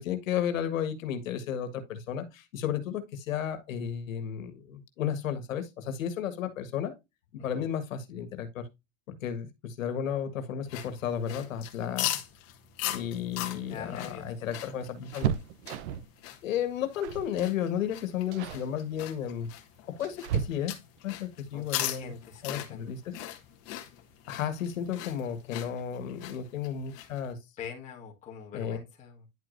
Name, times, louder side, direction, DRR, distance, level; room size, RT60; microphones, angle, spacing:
voice 1, 0.0-6.9 7.4-8.7 9.1-12.1 12.8-15.3 16.4-19.5 20.0-20.7 21.0-22.1 22.4-23.1 24.3-27.4 28.5-28.8, left 9 dB, 85° left, 1.7 m, -33 dB
sound 1, 10.6-27.3, left 14 dB, 40° left, 1.4 m, -40 dB
sound 2, 13.5-16.2 17.0-17.4 17.6-17.9 18.3-18.7 19.5-21.0 22.7-22.8 23.2-23.3 24.5-24.9 25.2-25.3 25.6-25.8, right 9 dB, 55° right, 0.9 m, -35 dB
voice 2, 13.7-14.3 21.5-22.9 27.6-29.3, left 6 dB, 20° left, 1.6 m, -44 dB
10.5 x 4.9 x 2.6 m
supercardioid pair, 150°, 39 cm